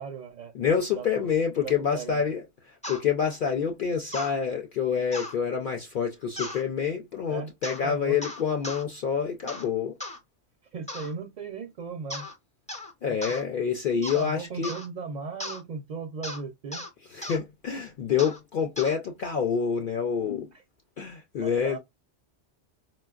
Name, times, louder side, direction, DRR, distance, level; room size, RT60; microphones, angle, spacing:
voice 1, 0.0-0.5 0.9-1.3 1.6-2.3 7.3-7.5 7.8-8.3 10.7-12.3 13.1-13.2 14.1-16.9 21.4-21.8, right 5 dB, 55° right, 0.5 m, -37 dB
voice 2, 0.5-10.0 13.0-14.7 17.1-20.5 21.0-21.8, left 7 dB, 60° left, 0.6 m, -27 dB
sound 1, 2.8-3.0 4.1-4.3 5.1-5.4 6.4-6.6 7.6-7.8 8.2-8.8 9.5-9.7 10.0-10.2 10.9-11.1 12.1-12.4 12.7-12.9 13.2-13.4 14.0-14.3 14.6-14.9 15.4-15.6 16.2-16.4 16.7-16.9 17.2-17.4 18.2-18.4 18.8-19.0, left 1 dB, 10° left, 0.5 m, -36 dB
4.2 x 2.2 x 2.3 m
omnidirectional pair, 1.2 m